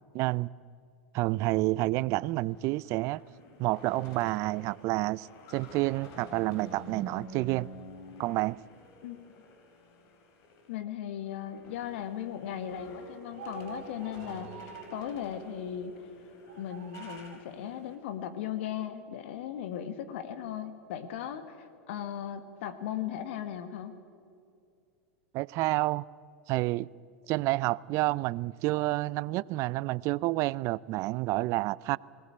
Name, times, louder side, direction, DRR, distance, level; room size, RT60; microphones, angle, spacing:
voice 1, 0.1-0.5 1.1-3.2 3.6-5.3 5.5-7.7 8.2-8.6 25.3-26.0 26.5-26.9 27.3-32.0, right 19 dB, 45° right, 0.4 m, -29 dB
sound 1, 2.4-10.8 11.1-17.9, left 1 dB, 50° left, 3.5 m, -49 dB
voice 2, 10.7-16.1 16.6-23.9, left 10 dB, 65° left, 1.6 m, -37 dB
sound 2, 13.3-15.1 16.4-17.5, right 8 dB, 65° right, 1.7 m, -47 dB
19.5 x 18.5 x 8.7 m
hypercardioid pair, 95°, 7 cm